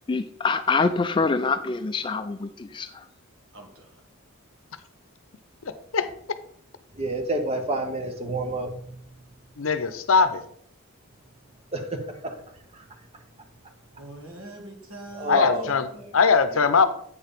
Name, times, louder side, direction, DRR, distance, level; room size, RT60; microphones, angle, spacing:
voice 1, 0.1-3.0, left 4 dB, 20° left, 0.3 m, -25 dB
voice 2, 3.5-3.9 14.0-16.1, right 2 dB, 70° right, 1.9 m, -43 dB
voice 3, 7.0-8.7 11.7-12.4 15.1-15.7 16.5-16.7, right 2 dB, 30° right, 1.0 m, -29 dB
voice 4, 9.6-10.4 15.3-16.9, left 5 dB, 65° left, 0.7 m, -20 dB
8.4 x 4.6 x 5.1 m
head